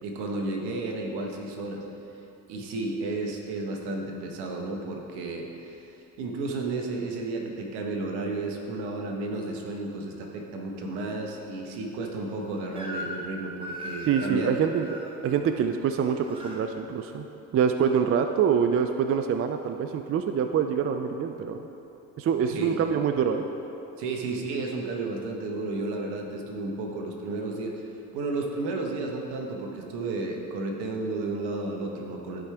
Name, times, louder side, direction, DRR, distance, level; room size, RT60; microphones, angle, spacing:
voice 1, 0.0-1.8 2.5-5.9 6.2-14.5 22.5-22.8 24.0-27.7 28.1-32.5, right 2 dB, 65° right, 1 dB, 1.3 m, -32 dB
Crying sobbing / Screech, 12.8-13.3 13.6-15.1 15.9-16.6, equal, 10° right, 1.4 m, -38 dB
voice 2, 14.1-17.3 17.5-21.6 22.2-23.4, right 7 dB, 35° right, 7 dB, 0.4 m, -25 dB
14.0 x 4.9 x 3.4 m, 2.9 s
hypercardioid pair, 65°, 42 cm